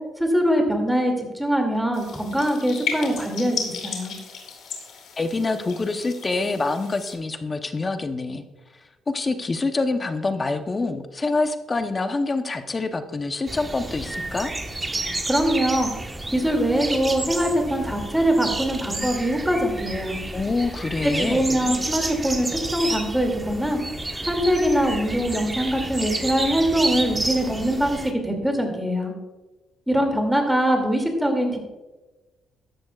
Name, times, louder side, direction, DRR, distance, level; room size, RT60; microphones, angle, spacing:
voice 1, 0.2-3.6 3.8-4.1 15.3-15.9 16.3-20.2 21.0-23.8 24.2-29.1 29.9-31.6, equal, 5° right, 2 dB, 2.5 m, -23 dB
sound 1, 1.9-7.1, left 6 dB, 75° left, 2.7 m, -34 dB
voice 2, 5.2-8.4 9.1-14.5 20.3-21.4, left 3 dB, 30° left, 8 dB, 0.8 m, -26 dB
sound 2, 13.5-28.1, right 2 dB, 20° right, 1.2 m, -30 dB
14.5 x 11.0 x 2.4 m, 1.1 s
cardioid pair, 90°, 0 cm